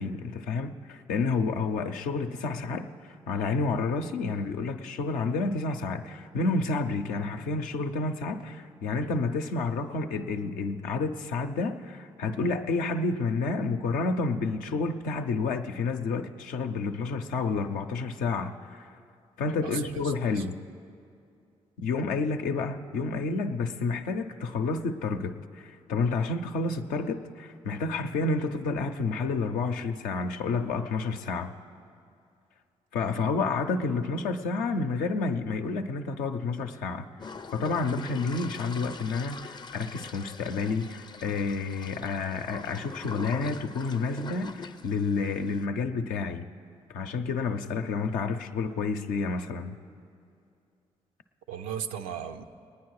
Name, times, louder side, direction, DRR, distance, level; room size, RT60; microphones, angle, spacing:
voice 1, 0.0-18.9 19.4-20.6 21.8-31.5 32.9-37.1 37.5-46.5 46.9-49.8, left 4 dB, 80° left, 5 dB, 0.6 m, -30 dB
voice 2, 19.6-20.4 51.5-52.4, right 8 dB, 85° right, 6 dB, 0.5 m, -36 dB
sound 1, 37.2-45.7, left 4 dB, 30° left, 0.5 m, -43 dB
19.5 x 9.5 x 4.7 m, 2.5 s
hypercardioid pair, 45°, 14 cm